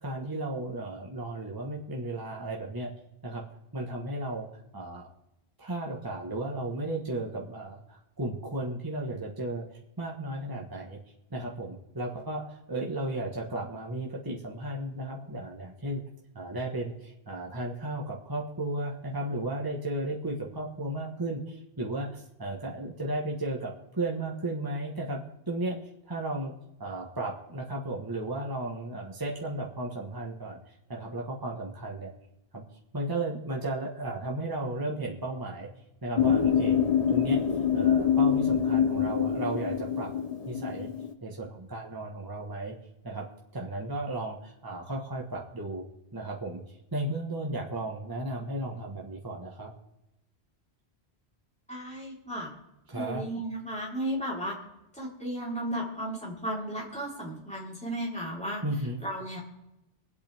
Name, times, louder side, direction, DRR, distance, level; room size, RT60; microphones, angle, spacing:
voice 1, 0.0-2.9 3.2-3.4 3.7-4.5 4.7-5.1 5.6-11.0 11.3-16.0 16.3-26.5 26.8-32.1 32.5-32.6 32.9-35.7 36.0-36.8 37.1-37.4 37.7-40.1 40.4-40.9 41.2-42.7 43.0-43.3 43.5-45.8 46.1-49.7 52.9-53.3 58.6-59.0, right 1 dB, 20° right, -2 dB, 1.4 m, -34 dB
sound 1, 36.2-41.1, left 8 dB, 40° left, 0.8 m, -25 dB
voice 2, 51.7-52.5 52.9-54.6 55.0-58.6 59.0-59.4, right 1 dB, 5° left, -4 dB, 4.0 m, -34 dB
25.0 x 8.5 x 3.5 m, 0.91 s
omnidirectional pair, 1.1 m